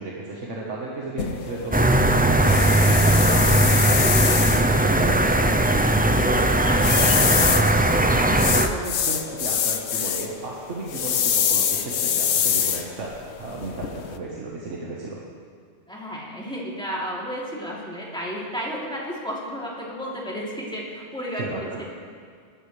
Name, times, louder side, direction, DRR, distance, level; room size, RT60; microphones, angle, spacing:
voice 1, 0.0-6.2 6.9-15.2 21.4-21.8, right 2 dB, 90° right, -4 dB, 1.8 m, -34 dB
sound 1, 1.2-14.2, left 8 dB, 70° left, 1.0 m, -26 dB
sound 2, 1.7-8.7, right 1 dB, 15° right, 0.3 m, -19 dB
voice 2, 6.5-7.2 15.9-21.8, equal, 5° left, -6 dB, 3.1 m, -32 dB
19.5 x 14.0 x 3.4 m, 2.2 s
omnidirectional pair, 1.2 m